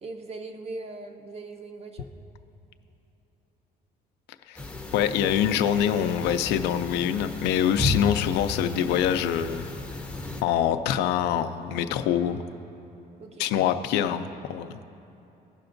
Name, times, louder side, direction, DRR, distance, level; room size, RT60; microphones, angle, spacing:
voice 1, 0.0-2.1 13.2-13.5, right 3 dB, 40° right, 5 dB, 0.7 m, -39 dB
sound 1, 4.6-10.4, left 2 dB, 5° left, 0.6 m, -33 dB
voice 2, 4.9-9.7 10.4-12.4 13.4-14.8, left 9 dB, 90° left, 9 dB, 0.4 m, -25 dB
17.0 x 5.8 x 2.5 m, 2.9 s
cardioid pair, 110°, 17 cm